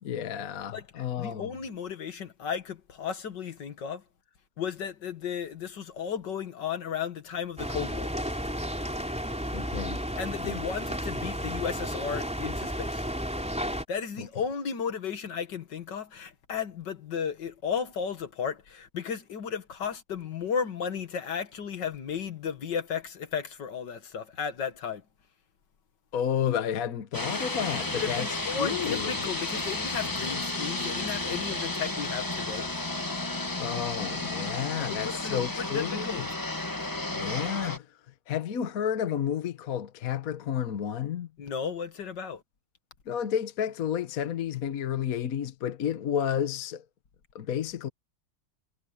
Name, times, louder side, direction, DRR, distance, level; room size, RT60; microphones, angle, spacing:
voice 1, 0.0-1.5 9.5-10.0 10.4-10.7 14.2-14.3 26.1-29.1 33.6-36.3 37.1-37.9 38.3-41.3 43.1-46.8 47.3-47.9, left 9 dB, 55° left, 1.4 m, -31 dB
voice 2, 0.7-4.0 4.6-8.1 10.2-13.0 13.9-25.0 27.8-32.7 34.8-36.2 41.4-42.4, left 7 dB, 75° left, 2.2 m, -34 dB
sound 1, 7.6-13.8, equal, 5° right, 3.5 m, -33 dB
sound 2, 27.1-37.8, left 2 dB, 15° left, 0.8 m, -32 dB
omnidirectional pair, 1.9 m